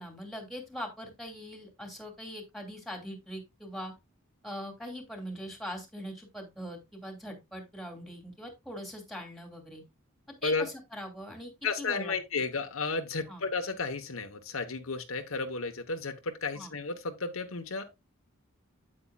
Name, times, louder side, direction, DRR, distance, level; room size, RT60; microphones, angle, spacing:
voice 1, 0.0-3.9 4.4-9.8 10.4-11.5 11.8-12.2 13.3-13.4 16.5-16.7, equal, ahead, 2.6 m, -41 dB
voice 2, 11.6-17.8, left 4 dB, 75° left, 1.1 m, -33 dB
8.6 x 8.5 x 2.3 m
head